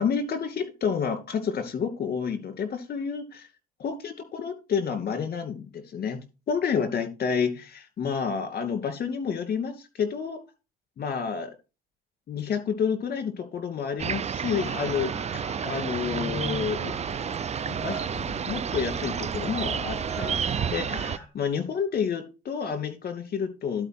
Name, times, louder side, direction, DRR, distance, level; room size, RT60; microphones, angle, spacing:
voice 1, 0.0-3.5 3.8-6.2 6.5-10.4 11.0-11.5 12.3-16.9 17.7-23.9, left 6 dB, 50° left, 8 dB, 2.4 m, -30 dB
sound 1, 14.0-21.2, right 7 dB, 30° right, 0.6 m, -30 dB
sound 2, 14.6-21.3, right 1 dB, 10° left, 3.6 m, -41 dB
11.5 x 4.9 x 6.0 m, 0.30 s
supercardioid pair, 75°, 21 cm